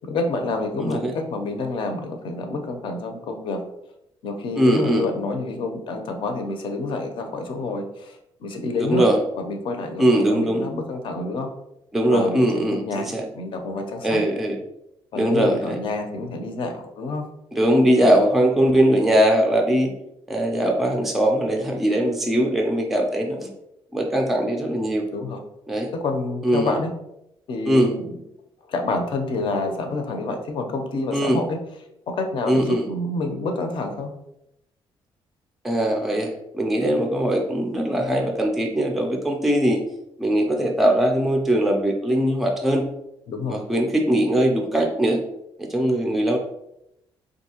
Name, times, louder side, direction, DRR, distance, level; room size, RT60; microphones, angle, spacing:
voice 1, 0.0-3.6 4.2-9.1 9.4-11.5 12.1-14.2 15.1-17.2 25.1-25.4 25.9-26.9 27.5-28.0 28.7-31.6 32.1-34.1 43.3-43.6, left 3 dB, 60° left, 4 dB, 0.6 m, -28 dB
voice 2, 0.8-1.1 4.6-5.1 8.7-9.2 10.0-10.6 11.9-13.2 14.0-14.6 15.2-15.8 17.5-19.9 20.3-23.5 23.9-25.1 25.7-25.9 26.4-26.7 27.7-27.9 31.1-31.4 32.5-32.9 35.6-39.8 40.2-42.8 43.5-45.2 45.6-46.4, right 1 dB, 5° right, 2 dB, 0.4 m, -21 dB
3.5 x 2.6 x 2.8 m, 0.82 s
cardioid pair, 165°, 10 cm